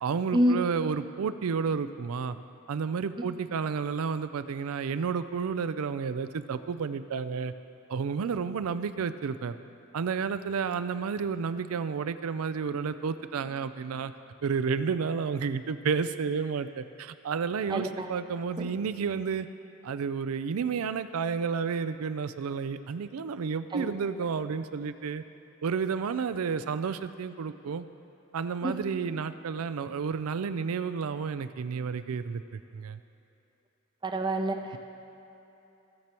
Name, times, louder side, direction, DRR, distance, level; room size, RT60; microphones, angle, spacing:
voice 1, 0.0-2.4 2.7-7.5 7.9-9.6 9.9-14.1 14.4-19.5 19.8-25.2 25.6-27.9 28.3-33.0, right 5 dB, 85° right, 12 dB, 0.4 m, -31 dB
voice 2, 17.7-18.1 23.7-23.9 28.6-28.8 34.0-34.8, equal, 20° right, 4 dB, 0.5 m, -27 dB
16.5 x 7.6 x 2.9 m, 3.0 s
head